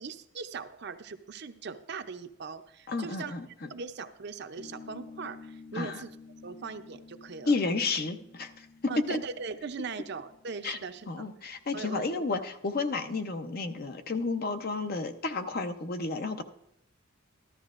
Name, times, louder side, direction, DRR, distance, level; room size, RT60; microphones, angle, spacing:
voice 1, 0.0-3.3 3.7-6.2 6.4-7.5 8.9-11.3 11.7-12.0, right 5 dB, 55° right, 9 dB, 0.6 m, -40 dB
voice 2, 2.9-3.7 5.7-6.0 7.4-8.5 8.8-9.2 10.6-10.8 11.1-16.4, left 3 dB, 45° left, 8 dB, 0.7 m, -31 dB
sound 1, 4.6-11.5, left 4 dB, 60° left, 1.2 m, -51 dB
14.0 x 12.5 x 2.5 m, 0.78 s
head